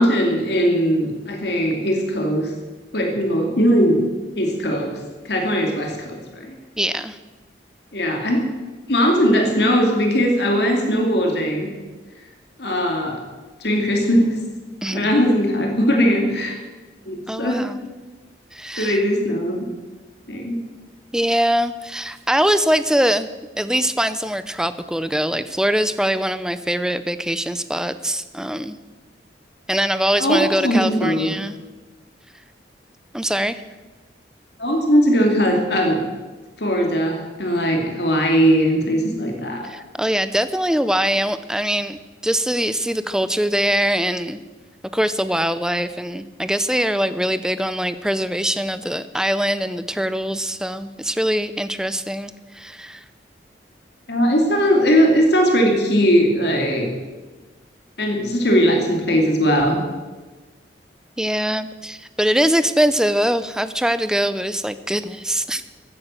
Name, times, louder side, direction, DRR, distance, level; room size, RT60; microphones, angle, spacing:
voice 1, 0.0-2.5 2.9-4.0 4.3-5.0 5.2-6.5 7.9-8.4 8.9-11.7 12.6-13.2 13.6-14.4 14.9-16.6 17.1-17.6 18.8-19.6 20.3-20.6 30.2-31.3 34.6-36.0 36.6-39.7 54.1-56.9 58.0-59.8, equal, 65° left, 2 dB, 2.6 m, -19 dB
voice 2, 6.8-7.2 14.8-15.1 17.3-17.8 18.5-19.0 21.1-23.3 23.6-28.8 29.7-31.6 33.1-33.6 39.6-44.4 44.9-53.0 61.2-65.6, equal, 5° right, 13 dB, 0.5 m, -22 dB
15.0 x 9.4 x 7.6 m, 1.2 s
head